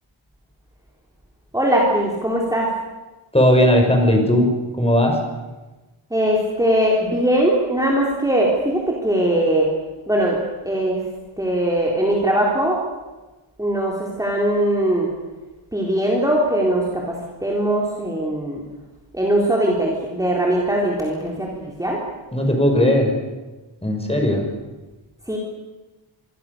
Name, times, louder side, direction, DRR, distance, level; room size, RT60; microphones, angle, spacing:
voice 1, 1.5-2.7 6.1-9.7 10.1-10.4 10.7-11.0 11.4-12.8 13.6-15.1 15.7-18.6 19.1-21.5 21.8-22.0 25.3-25.4, right 1 dB, 5° right, -3 dB, 4.0 m, -20 dB
voice 2, 3.3-4.5 4.7-5.2 22.3-23.1 23.8-24.5, left 1 dB, 10° left, 2 dB, 5.9 m, -17 dB
26.5 x 23.5 x 6.9 m, 1.2 s
wide cardioid pair, 125°, 48 cm